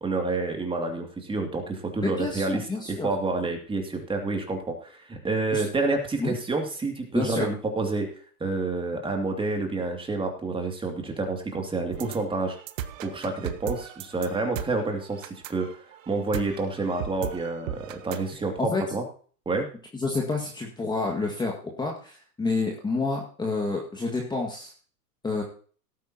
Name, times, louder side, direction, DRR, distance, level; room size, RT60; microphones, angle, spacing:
voice 1, 0.0-12.6 13.0-15.7 16.1-19.0 19.5-19.7, right 3 dB, 10° right, 3 dB, 2.6 m, -29 dB
voice 2, 2.0-3.1 5.5-5.6 6.2-6.3 7.1-7.5 18.6-18.8 19.9-24.7 25.2-25.4, left 3 dB, 10° left, 0 dB, 2.0 m, -29 dB
sound 1, 11.9-18.3, right 10 dB, 55° right, 1.2 m, -37 dB
17.5 x 9.2 x 2.9 m, 0.42 s
hypercardioid pair, 120°, 47 cm